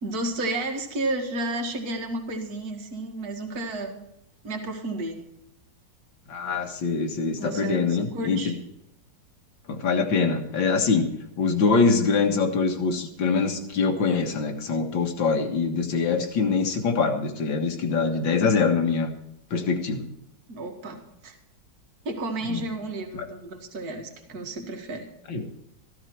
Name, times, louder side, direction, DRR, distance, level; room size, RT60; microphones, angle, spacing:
voice 1, 0.0-4.0 4.4-5.2 7.4-8.5 20.5-21.3 22.1-25.1, right 2 dB, 55° right, 3 dB, 2.3 m, -32 dB
voice 2, 6.3-8.5 9.7-11.1 11.4-19.1 19.5-20.1 22.5-22.7 23.1-23.3 25.3-25.5, left 4 dB, 90° left, 5 dB, 2.3 m, -24 dB
14.5 x 13.0 x 4.6 m, 0.80 s
omnidirectional pair, 2.0 m